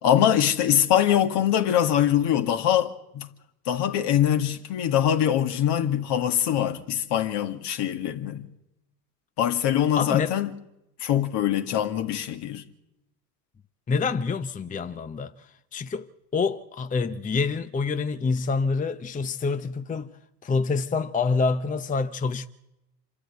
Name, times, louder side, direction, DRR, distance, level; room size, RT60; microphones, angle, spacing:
voice 1, 0.0-3.3 3.7-8.4 9.4-10.5 11.0-12.6, left 10 dB, 55° left, 1.9 m, -23 dB
voice 2, 10.0-10.4 13.9-15.3 15.7-16.1 16.3-20.1 20.4-22.5, left 4 dB, 15° left, 0.8 m, -26 dB
26.5 x 13.5 x 8.1 m
hypercardioid pair, 80°, 48 cm